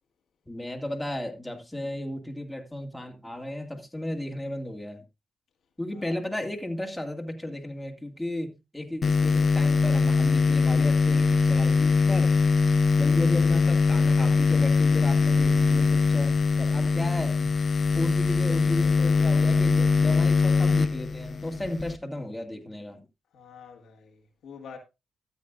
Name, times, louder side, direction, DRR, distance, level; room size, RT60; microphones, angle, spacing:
voice 1, 0.5-5.0 5.8-12.4 12.9-17.6 17.9-23.1, left 1 dB, 10° left, 2.4 m, -34 dB
sound 1, 9.0-22.0, left 4 dB, 50° left, 0.5 m, -22 dB
voice 2, 23.3-24.8, left 6 dB, 70° left, 1.8 m, -46 dB
13.5 x 8.4 x 2.5 m
supercardioid pair, 50°, 0 cm